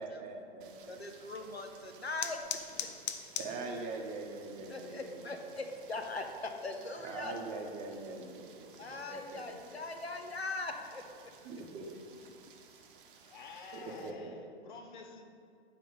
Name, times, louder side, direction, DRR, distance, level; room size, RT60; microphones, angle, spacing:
voice 1, 0.0-1.0 3.4-5.2 7.0-9.6 11.4-11.9 13.7-14.3, right 3 dB, 25° right, 1 dB, 1.0 m, -43 dB
Rain, 0.6-14.1, right 6 dB, 55° right, 0.9 m, -59 dB
voice 2, 0.8-2.4 4.7-7.3 8.8-11.0, left 3 dB, 80° left, 5 dB, 0.9 m, -40 dB
sound 1, 1.2-12.3, left 9 dB, 30° left, 0.5 m, -48 dB
voice 3, 3.4-3.8 11.8-12.3 12.7-13.0 13.2-15.2, left 4 dB, 50° left, 5 dB, 1.0 m, -51 dB
9.3 x 5.0 x 5.3 m, 2.3 s
figure-of-eight pair, 105°, 31 cm